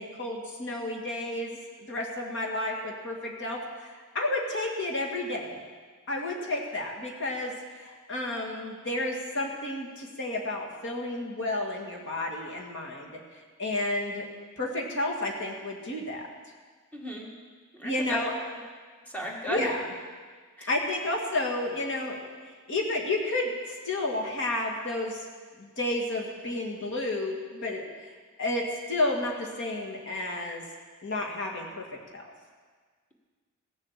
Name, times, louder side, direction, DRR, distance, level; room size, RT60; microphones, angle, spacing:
voice 1, 0.0-5.6 6.1-13.1 13.6-14.3 14.6-16.3 17.8-18.3 19.5-19.9 20.7-22.3 22.7-25.2 25.6-28.1 28.4-30.6 31.0-31.9 32.1-32.2, left 2 dB, 60° left, 0 dB, 2.1 m, -31 dB
voice 2, 16.9-17.3 17.7-18.2 18.5-18.6 19.0-19.7 20.6-20.7, right 1 dB, 5° left, -1 dB, 1.7 m, -35 dB
16.0 x 7.4 x 7.5 m, 1.6 s
head